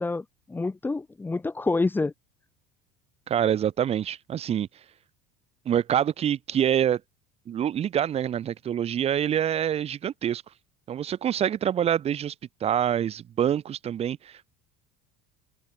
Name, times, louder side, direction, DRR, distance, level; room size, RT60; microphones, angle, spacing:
voice 1, 0.0-2.1, left 3 dB, 10° left, 4.2 m, -27 dB
voice 2, 3.3-4.7 5.6-7.0 7.5-10.4 10.9-12.3 12.6-14.5, right 9 dB, 30° right, 5.0 m, -26 dB
cardioid pair, 170°, 20 cm